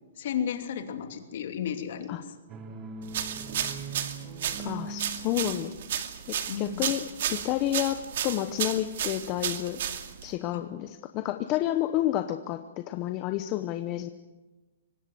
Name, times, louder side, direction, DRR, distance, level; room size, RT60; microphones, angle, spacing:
voice 1, 0.2-2.2 6.5-6.8 10.5-10.6, left 8 dB, 50° left, 6 dB, 2.9 m, -33 dB
sound 1, 2.5-6.2, right 4 dB, 20° right, 1.5 m, -41 dB
sound 2, 3.1-10.3, right 9 dB, 55° right, 2.3 m, -33 dB
voice 2, 4.6-5.7 6.3-9.8 10.2-14.1, left 13 dB, 25° left, 9 dB, 0.8 m, -30 dB
25.0 x 19.0 x 7.8 m, 1.2 s
hypercardioid pair, 170°, 0 cm